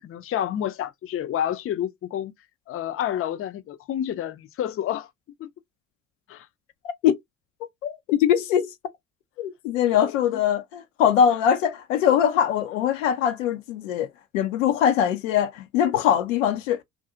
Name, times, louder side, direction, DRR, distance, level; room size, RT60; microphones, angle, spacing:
voice 1, 0.0-2.3 2.7-5.1 5.4-5.5 6.3-6.5 10.0-10.1, left 10 dB, 35° left, 0.5 m, -29 dB
voice 2, 7.8-8.7 9.4-14.1 14.3-16.8, left 9 dB, 85° left, 0.5 m, -22 dB
2.6 x 2.5 x 2.5 m
hypercardioid pair, 50°, 37 cm